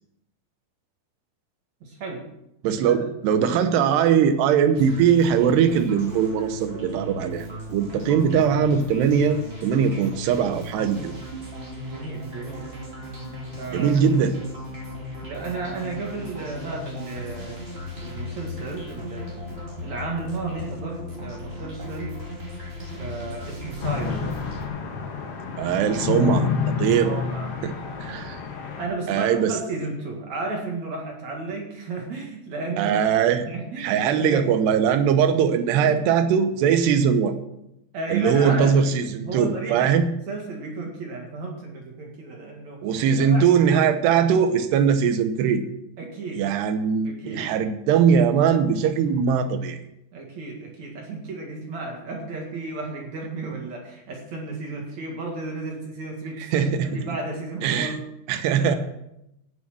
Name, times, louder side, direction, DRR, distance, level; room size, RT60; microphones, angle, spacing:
voice 1, 1.8-2.3 2.8-3.0 7.8-8.3 11.8-12.7 13.5-14.0 15.2-17.7 18.0-19.5 19.8-22.2 22.9-24.3 26.8-28.2 28.8-33.0 33.5-34.5 35.8-36.0 37.9-39.0 39.2-42.8 43.2-43.5 46.0-46.5 47.0-47.5 50.1-58.0 58.6-58.8, right 3 dB, 50° right, 0 dB, 2.5 m, -33 dB
voice 2, 2.6-11.1 13.7-14.4 25.6-26.5 26.8-27.1 27.6-27.7 28.0-28.4 29.1-29.5 32.8-33.5 33.8-37.3 38.1-40.0 42.8-45.6 46.4-49.8 56.4-57.0 57.6-58.0 58.3-58.8, right 7 dB, 75° right, 9 dB, 2.8 m, -21 dB
sound 1, 4.7-24.7, equal, 20° right, 1.5 m, -36 dB
sound 2, 23.8-28.9, left 6 dB, 50° left, 1.8 m, -28 dB
17.5 x 7.0 x 6.2 m, 0.84 s
omnidirectional pair, 5.3 m